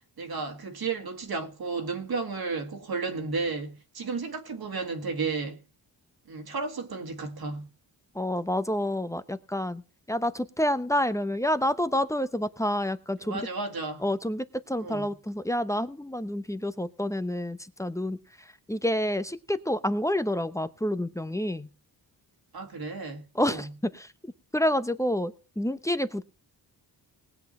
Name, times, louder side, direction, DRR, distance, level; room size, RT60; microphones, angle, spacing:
voice 1, 0.2-5.6 6.3-7.7 13.2-14.0 14.8-15.1 22.5-23.7, right 4 dB, 60° right, 1.9 m, -33 dB
voice 2, 8.1-9.8 10.1-13.5 14.0-21.7 23.3-26.2, left 1 dB, 5° left, 0.8 m, -29 dB
19.0 x 7.7 x 4.2 m
cardioid pair, 85°, 41 cm